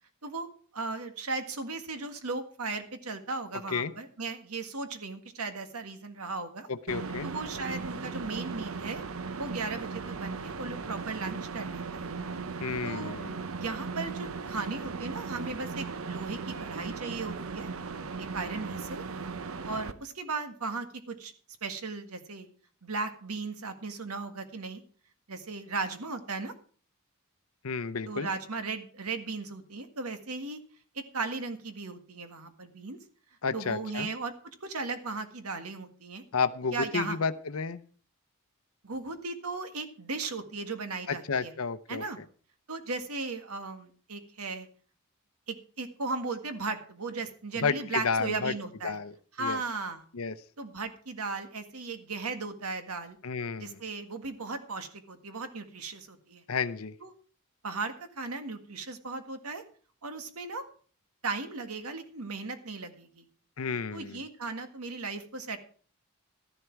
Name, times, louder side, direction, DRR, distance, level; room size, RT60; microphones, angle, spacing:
voice 1, 0.2-6.7 7.2-9.0 9.4-12.1 12.8-13.1 13.6-17.7 18.3-19.0 19.6-21.3 21.6-22.5 22.8-24.8 25.3-26.5 28.1-30.6 31.0-33.0 33.5-34.3 34.6-36.2 36.7-37.2 38.8-41.5 41.9-42.2 42.7-44.7 45.5-49.0 49.4-50.0 50.6-53.2 53.6-56.4 57.0-57.1 57.6-59.6 60.0-60.6 61.2-63.3 63.9-65.6, right 3 dB, 85° right, 8 dB, 1.8 m, -36 dB
voice 2, 6.7-7.3 12.6-13.4 27.6-28.3 33.4-34.1 36.3-37.8 41.1-42.0 47.6-48.5 48.8-49.6 50.1-50.3 53.2-53.8 56.5-56.9 63.6-64.2, left 5 dB, 70° left, 12 dB, 0.7 m, -31 dB
sound 1, 6.9-19.9, right 4 dB, 65° right, 0.8 m, -37 dB
13.0 x 11.0 x 4.6 m, 0.42 s
head